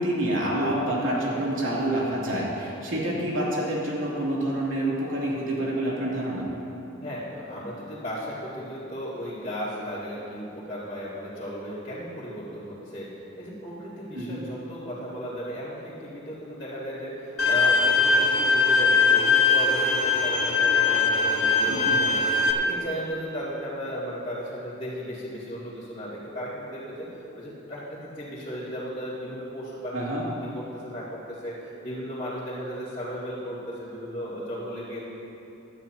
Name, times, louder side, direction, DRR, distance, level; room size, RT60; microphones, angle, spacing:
voice 1, 0.0-6.5 14.1-14.4 21.7-22.0 29.9-30.2, right 1 dB, 75° right, -5 dB, 2.8 m, -27 dB
voice 2, 7.0-13.1 13.4-27.1 27.3-35.1, equal, 25° left, -13 dB, 2.5 m, -35 dB
Bowed string instrument, 17.4-22.5, left 4 dB, 80° left, 1.1 m, -21 dB
18.5 x 12.5 x 2.8 m, 3.0 s
head